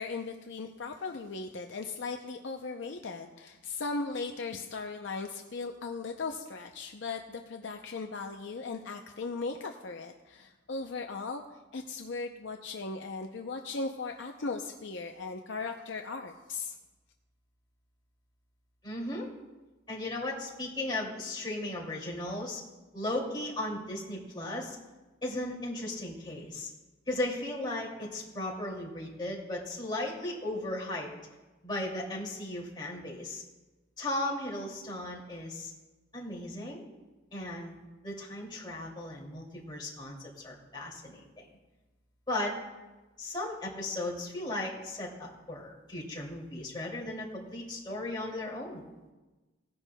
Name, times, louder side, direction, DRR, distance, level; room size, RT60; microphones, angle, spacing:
voice 1, 0.0-11.4 11.7-16.8, left 4 dB, 60° left, 3 dB, 0.6 m, -38 dB
voice 2, 18.8-19.3 19.9-22.6 22.9-24.8 25.2-26.7 27.1-31.1 31.6-33.4 34.0-35.7 36.1-36.8 37.3-37.8 38.0-41.5 42.3-42.5 43.2-48.8, left 1 dB, 20° left, -3 dB, 2.5 m, -36 dB
18.0 x 10.5 x 2.2 m, 1.2 s
head